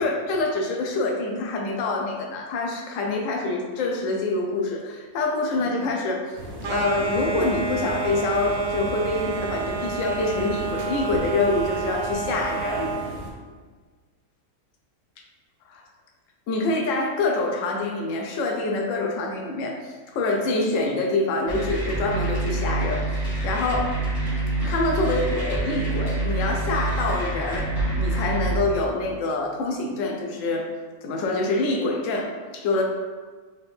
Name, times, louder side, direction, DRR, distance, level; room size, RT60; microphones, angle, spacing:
voice 1, 0.0-6.3 6.6-12.9 15.7-15.8 16.5-24.0 24.6-30.7 31.0-32.8, left 2 dB, 65° left, 1 dB, 0.9 m, -26 dB
sound 1, 6.3-13.3, right 1 dB, 60° right, 0.9 m, -36 dB
sound 2, 6.6-13.1, right 4 dB, 80° right, 1.2 m, -30 dB
sound 3, 21.5-28.6, right 2 dB, 35° left, 0.9 m, -26 dB
4.2 x 2.6 x 3.3 m, 1.4 s
omnidirectional pair, 1.6 m